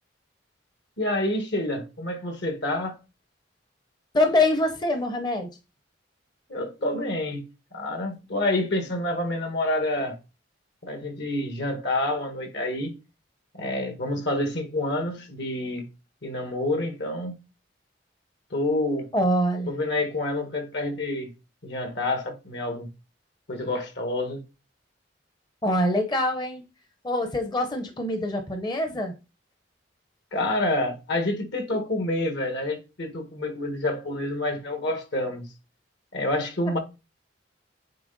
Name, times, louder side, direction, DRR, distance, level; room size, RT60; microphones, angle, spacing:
voice 1, 1.0-3.0 6.5-7.4 7.7-10.2 10.8-12.9 13.5-15.9 16.2-17.3 18.5-19.1 19.7-21.3 21.6-22.9 23.5-24.4 30.3-35.5 36.1-36.8, left 1 dB, 65° left, 1.6 m, -28 dB
voice 2, 4.1-5.6 19.1-19.7 25.6-26.6 27.0-29.1, left 1 dB, 25° left, 0.7 m, -24 dB
8.7 x 3.3 x 3.9 m
head